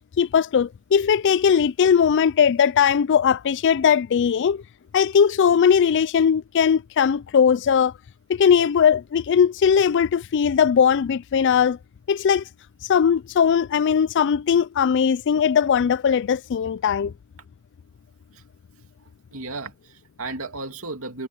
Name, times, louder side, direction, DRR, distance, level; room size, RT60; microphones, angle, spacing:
voice 1, 0.2-4.6 4.9-7.9 8.3-11.8 12.1-12.4 12.9-17.1, left 7 dB, 55° left, 0.4 m, -19 dB
voice 2, 19.0-21.3, right 3 dB, 70° right, 2.6 m, -35 dB
head